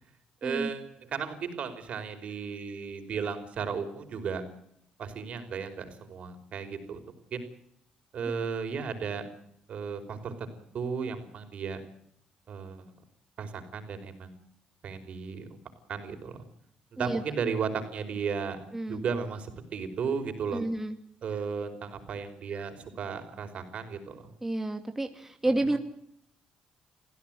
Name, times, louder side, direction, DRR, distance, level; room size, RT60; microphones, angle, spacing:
voice 1, 0.4-4.4 5.0-7.0 7.3-7.4 8.1-9.3 9.7-11.8 12.5-12.9 13.4-14.3 14.8-15.5 15.9-16.4 16.9-18.6 18.9-20.6 21.2-24.2, right 6 dB, 60° right, 7 dB, 5.1 m, -34 dB
voice 2, 20.5-21.0 24.4-25.8, right 2 dB, 15° right, 5 dB, 2.4 m, -30 dB
26.0 x 16.0 x 9.3 m, 0.73 s
cardioid pair, 80°, 2 cm